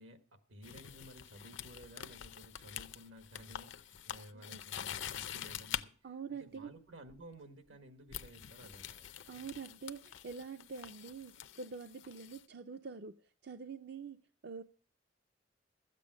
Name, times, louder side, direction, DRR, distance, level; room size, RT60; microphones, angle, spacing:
voice 1, 0.0-9.5, right 1 dB, 80° right, 8 dB, 1.4 m, -55 dB
sound 1, 0.6-5.8 7.1-7.3 8.1-12.4, left 10 dB, 75° left, 0.6 m, -45 dB
voice 2, 6.0-6.7 9.3-13.2 13.4-14.2 14.4-14.6, right 5 dB, 55° right, 9 dB, 0.5 m, -45 dB
13.0 x 8.4 x 6.2 m, 0.43 s
head